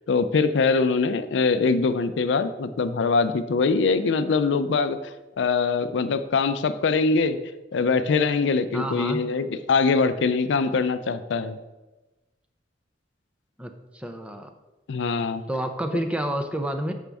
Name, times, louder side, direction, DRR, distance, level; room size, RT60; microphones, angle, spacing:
voice 1, 0.1-5.0 5.4-7.4 7.7-11.6 14.9-15.4, left 4 dB, 80° left, 11 dB, 0.4 m, -23 dB
voice 2, 8.7-9.2 13.6-14.5 15.5-16.9, right 1 dB, 5° right, 6 dB, 0.4 m, -29 dB
7.1 x 5.1 x 3.4 m, 1.1 s
head